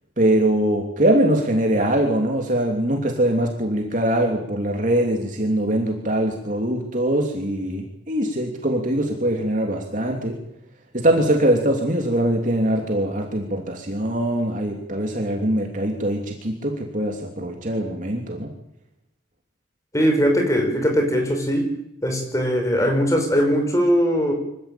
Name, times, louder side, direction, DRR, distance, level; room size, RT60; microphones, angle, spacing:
voice 1, 0.2-10.4 10.9-18.5, right 1 dB, 45° right, 2 dB, 3.1 m, -22 dB
voice 2, 19.9-21.7 22.0-24.3, equal, 15° left, 3 dB, 5.7 m, -20 dB
25.5 x 16.0 x 9.2 m, 0.81 s
head